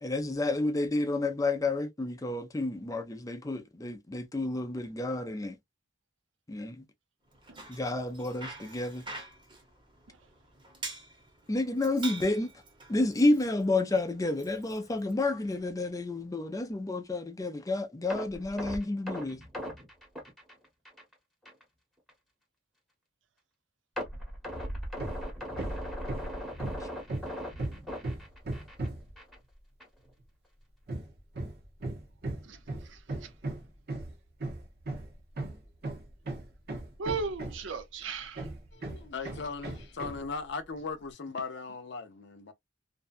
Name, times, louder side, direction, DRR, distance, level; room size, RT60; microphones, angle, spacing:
voice 1, 0.0-5.6 6.5-6.8 7.7-9.0 11.5-12.5 12.9-19.4, left 2 dB, 20° left, 0.5 m, -30 dB
Bicycle, 7.3-15.6, right 3 dB, 25° right, 0.9 m, -46 dB
sound 1, 18.1-21.1 21.4-21.6 22.1-22.2 24.0-28.9 29.2-29.4 29.8-29.9, equal, ahead, 1.0 m, -38 dB
Hammer, 25.0-25.3 25.6-29.1 30.9-37.8 38.4-40.3, right 2 dB, 55° right, 0.9 m, -37 dB
voice 2, 32.4-33.3 37.0-38.5, right 5 dB, 80° right, 0.6 m, -37 dB
voice 3, 38.7-42.5, left 4 dB, 65° left, 0.6 m, -38 dB
2.6 x 2.3 x 2.4 m
head